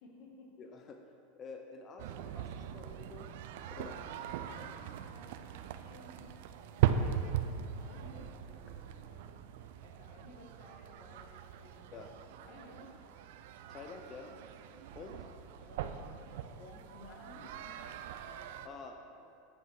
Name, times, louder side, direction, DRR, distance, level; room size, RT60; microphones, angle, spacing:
voice 1, 0.0-0.6 3.3-9.3 9.8-12.1 12.4-12.9 14.7-18.0 18.2-18.8 19.1-19.3, left 2 dB, 65° left, -1 dB, 1.8 m, -57 dB
voice 2, 0.6-1.0 1.3-3.3 3.7-4.0 11.9-12.3 13.7-14.3 15.0-15.2 18.6-19.0, left 4 dB, 35° left, 3 dB, 0.7 m, -48 dB
sound 1, 2.0-18.7, right 9 dB, 70° right, 0.4 m, -39 dB
8.8 x 5.8 x 4.9 m, 2.5 s
hypercardioid pair, 105°, 0 cm